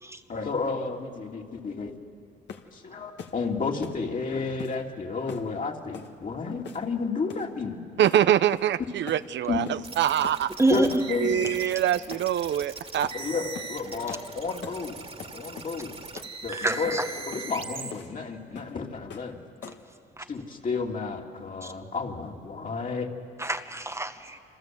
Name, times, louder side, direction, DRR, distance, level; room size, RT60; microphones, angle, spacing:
voice 1, 0.3-1.9 2.7-7.8 9.5-9.6 10.7-11.4 13.1-15.0 15.3-16.0 16.4-16.9 17.3-19.4 20.3-23.1, left 4 dB, 40° left, 1 dB, 3.1 m, -31 dB
sound 1, 2.5-2.7 3.2-3.4 3.8-4.0 4.6-4.8 5.3-5.5 5.9-6.1 6.6-7.0 7.3-7.5 8.0-8.2 8.5-8.8 9.1-9.3 9.7-9.8 10.2-10.4 10.8-11.1 11.4-11.6 12.1-12.3 13.0-13.2 13.5-13.8 14.1-14.3 14.6-14.8 15.2-15.7 16.2-16.3 16.7-16.9 17.3-17.5 17.9-18.1 18.6-18.8 19.1-19.3 19.6-19.9, left 7 dB, 65° left, 1.9 m, -42 dB
voice 2, 8.0-10.5 11.2-13.1, right 11 dB, 65° right, 13 dB, 0.6 m, -24 dB
sound 2, 9.8-17.9, right 4 dB, 30° right, 2.2 m, -40 dB
voice 3, 10.6-11.0 11.6-11.7 16.5-17.1 20.2-20.3 21.6-21.7 23.4-24.4, right 2 dB, 15° right, 6 dB, 1.1 m, -27 dB
27.5 x 26.5 x 7.9 m, 2.4 s
cardioid pair, 90°, 20 cm